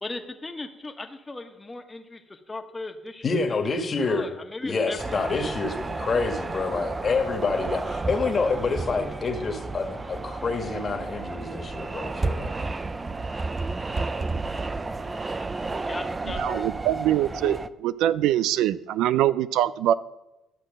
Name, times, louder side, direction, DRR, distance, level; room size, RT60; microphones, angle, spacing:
voice 1, 0.0-3.6 4.0-5.3 15.7-16.7 17.4-17.6, left 2 dB, 20° left, 1.4 m, -37 dB
voice 2, 3.2-4.3 4.6-12.6, left 4 dB, 40° left, 1.6 m, -27 dB
sound 1, 5.0-17.7, right 3 dB, 25° right, 0.5 m, -32 dB
voice 3, 16.4-17.6 17.8-19.9, right 12 dB, 85° right, 0.4 m, -23 dB
12.5 x 6.3 x 6.5 m
cardioid pair, 80°, 0 cm